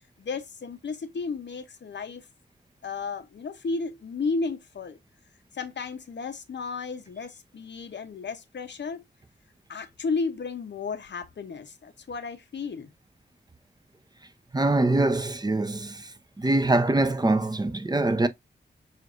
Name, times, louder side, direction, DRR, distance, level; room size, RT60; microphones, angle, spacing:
voice 1, 0.2-2.2 2.8-5.0 5.5-9.0 9.7-12.9, left 4 dB, 70° left, 0.8 m, -33 dB
voice 2, 14.5-16.1 16.4-18.3, right 2 dB, 20° right, 0.6 m, -23 dB
6.3 x 2.5 x 2.5 m
wide cardioid pair, 75°, 19 cm